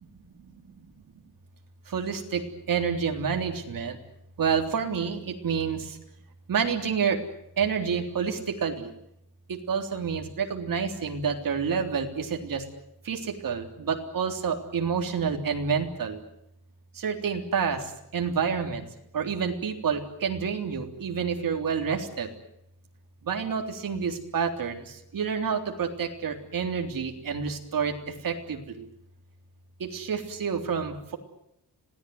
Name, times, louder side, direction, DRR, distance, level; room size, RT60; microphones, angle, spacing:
voice 1, 1.9-2.4 2.7-4.0 4.4-6.0 6.5-7.2 7.6-8.9 9.5-12.6 13.1-16.2 17.0-17.8 18.1-18.8 19.1-22.3 23.2-27.9 28.2-28.9 29.8-31.2, right 6 dB, 55° right, 4 dB, 3.6 m, -28 dB
26.5 x 18.0 x 9.6 m, 0.80 s
wide cardioid pair, 165°, 39 cm